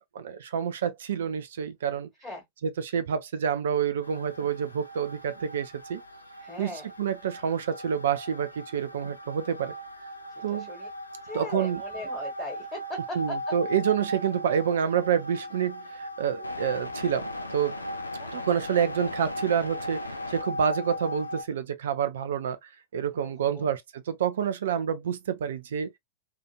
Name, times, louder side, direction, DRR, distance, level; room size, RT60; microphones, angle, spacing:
voice 1, 0.1-2.1 2.6-6.0 6.6-9.7 10.4-10.7 11.3-11.8 13.2-17.8 18.3-20.0 20.3-25.9, right 8 dB, 60° right, 0.4 m, -28 dB
sound 1, 4.0-21.4, equal, 80° left, 0.4 m, -38 dB
voice 2, 6.4-6.9 10.4-10.9 11.2-13.2 18.2-18.3 23.2-23.7, left 2 dB, 10° left, 1.4 m, -39 dB
2.8 x 2.5 x 2.3 m
figure-of-eight pair, 90°, 0 cm